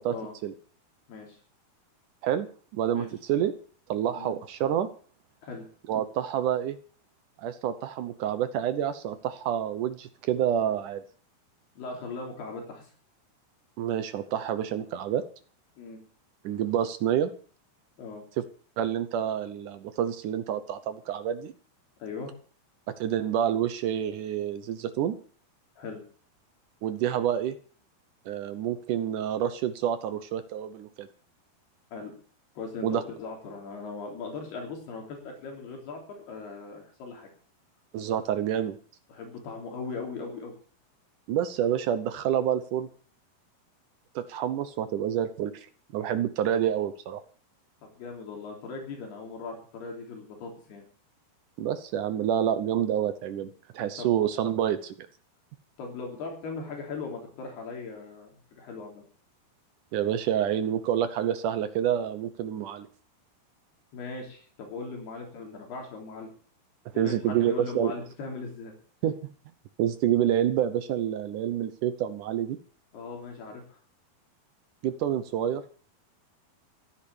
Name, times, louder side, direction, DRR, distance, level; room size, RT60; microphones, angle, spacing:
voice 1, 2.7-3.5 3.9-4.9 5.9-6.8 7.4-11.0 13.8-15.2 16.4-17.3 18.8-21.5 23.0-25.2 26.8-27.6 28.3-31.1 32.8-33.0 37.9-38.8 41.3-42.9 44.2-45.5 45.9-47.2 51.6-54.9 59.9-62.9 67.0-68.0 69.0-69.1 69.8-72.6 74.8-75.6, right 10 dB, 70° right, 11 dB, 2.0 m, -28 dB
voice 2, 11.8-12.9 15.8-16.0 18.0-18.2 22.0-22.3 25.8-26.0 31.9-32.1 32.6-36.0 36.3-37.3 39.1-40.5 47.8-50.8 54.0-54.1 55.8-59.0 63.9-66.3 66.9-68.7 72.9-73.8, left 4 dB, 75° left, 1 dB, 5.3 m, -39 dB
15.5 x 10.0 x 7.0 m, 0.43 s
omnidirectional pair, 4.6 m